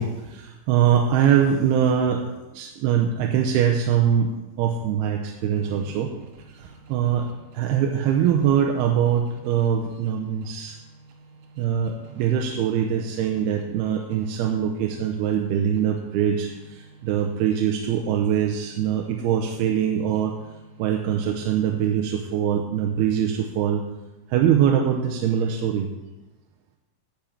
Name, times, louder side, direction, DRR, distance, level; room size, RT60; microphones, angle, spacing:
voice 1, 0.0-6.2 6.6-7.3 7.5-10.8 11.6-20.3 20.8-23.8 24.3-25.9, right 8 dB, 85° right, 2 dB, 2.8 m, -23 dB
sound 1, 5.6-21.7, right 4 dB, 65° right, 2.7 m, -50 dB
10.5 x 6.2 x 8.7 m, 1.1 s
omnidirectional pair, 4.5 m